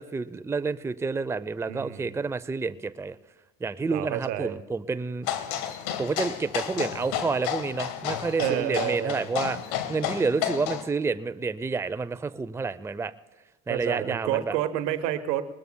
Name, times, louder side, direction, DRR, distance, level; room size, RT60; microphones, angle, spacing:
voice 1, 0.0-3.2 3.6-5.3 6.0-13.1 13.7-14.6, right 4 dB, 5° right, 14 dB, 0.5 m, -29 dB
voice 2, 1.6-2.2 3.9-4.6 8.4-9.3 13.7-15.4, right 12 dB, 85° right, 11 dB, 1.0 m, -29 dB
sound 1, 5.2-10.8, left 10 dB, 80° left, 1.6 m, -32 dB
21.5 x 20.5 x 2.2 m, 1.1 s
hypercardioid pair, 60°, 48 cm